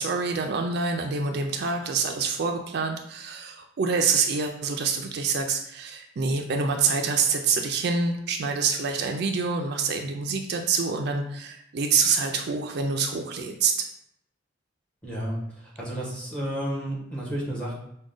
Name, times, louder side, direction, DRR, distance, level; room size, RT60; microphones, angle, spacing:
voice 1, 0.0-13.7, right 5 dB, 55° right, 4 dB, 0.4 m, -26 dB
voice 2, 15.0-17.7, right 1 dB, 5° left, -5 dB, 1.1 m, -32 dB
4.8 x 2.2 x 3.8 m, 0.75 s
head